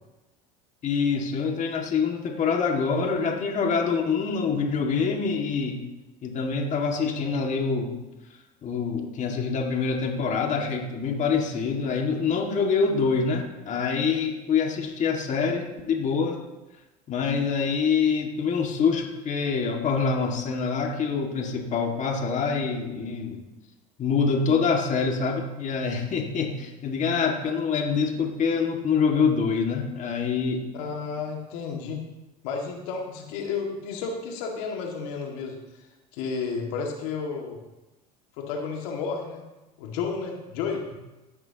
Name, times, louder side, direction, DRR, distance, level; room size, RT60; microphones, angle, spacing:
voice 1, 0.8-5.8 6.2-8.0 8.6-16.4 17.1-23.4 24.0-30.7, left 5 dB, 40° left, 1 dB, 2.1 m, -25 dB
voice 2, 30.7-32.0 32.4-35.9 36.1-37.6 38.4-39.4 39.8-40.9, left 5 dB, 70° left, 1 dB, 2.1 m, -32 dB
15.0 x 11.0 x 3.0 m, 1.0 s
hypercardioid pair, 85°, 20 cm